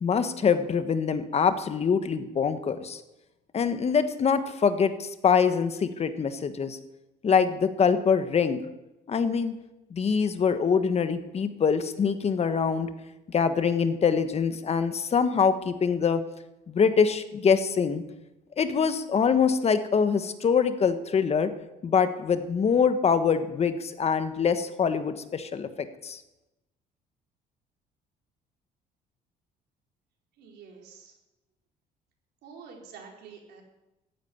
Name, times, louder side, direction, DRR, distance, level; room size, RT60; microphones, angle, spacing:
voice 1, 0.0-3.0 3.5-6.8 7.2-8.6 9.1-9.5 9.9-12.9 13.3-16.2 16.7-18.0 18.6-21.5 21.8-26.2, left 6 dB, 40° left, 10 dB, 1.3 m, -24 dB
voice 2, 30.4-31.1 32.4-33.6, right 6 dB, 75° right, 1 dB, 4.6 m, -47 dB
14.5 x 10.0 x 9.6 m, 0.97 s
cardioid pair, 110°, 17 cm